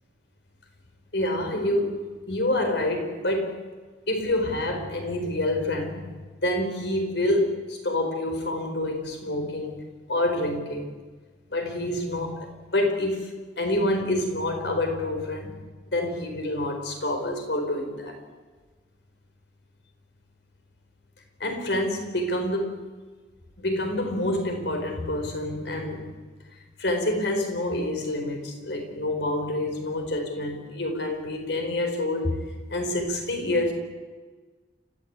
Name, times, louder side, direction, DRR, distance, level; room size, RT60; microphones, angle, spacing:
voice 1, 1.1-3.6 4.1-9.8 10.1-10.9 11.5-15.5 15.9-18.2 21.4-22.8 23.6-26.1 26.8-32.4 32.7-33.7, left 1 dB, 70° left, 4 dB, 4.4 m, -27 dB
29.5 x 14.5 x 8.9 m, 1.4 s
head